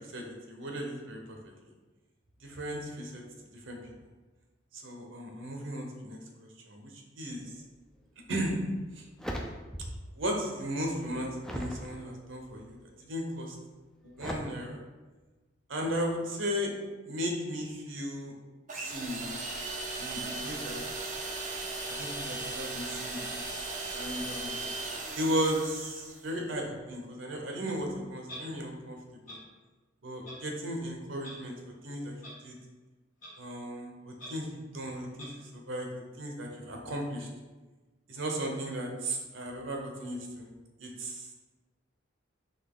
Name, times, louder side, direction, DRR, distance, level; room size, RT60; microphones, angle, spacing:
voice 1, 0.1-1.5 2.4-3.2 3.7-3.9 4.7-6.2 6.7-6.9 7.2-7.4 8.3-8.6 9.0-9.1 10.2-13.6 14.0-14.8 15.7-16.7 17.1-18.3 18.7-19.2 20.0-20.8 21.9-23.5 23.9-24.6 25.1-29.0 29.3-29.4 30.0-31.6 31.8-32.1 32.4-32.6 33.4-37.3 38.1-40.5 40.8-41.3, equal, 80° right, 1 dB, 0.8 m, -35 dB
sound 1, 8.2-8.3 8.8-10.1 10.5-11.9 12.5-12.9 14.2-14.4, equal, ahead, 0.3 m, -39 dB
sound 2, 18.7-26.3, right 3 dB, 40° right, 0.7 m, -37 dB
Clock, 28.3-28.4 29.3-29.4 30.2-30.4 31.2-31.3 32.2-32.3 33.2-33.3 34.2-34.3 35.2-35.3, equal, 40° left, 1.3 m, -44 dB
4.2 x 3.0 x 3.7 m, 1.2 s
head